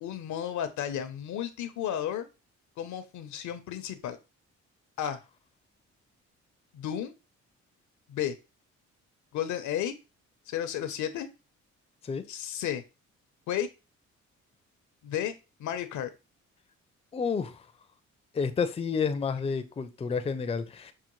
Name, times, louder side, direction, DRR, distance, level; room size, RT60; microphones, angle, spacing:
voice 1, 0.0-2.3 2.8-4.2 5.0-5.2 6.7-7.1 8.1-8.4 9.3-9.9 10.5-11.3 12.3-12.8 13.5-13.7 15.0-16.1, left 10 dB, 75° left, 0.7 m, -33 dB
voice 2, 17.1-17.6 18.3-20.9, left 5 dB, 20° left, 0.4 m, -30 dB
5.5 x 2.2 x 3.0 m
cardioid pair, 90°, 30 cm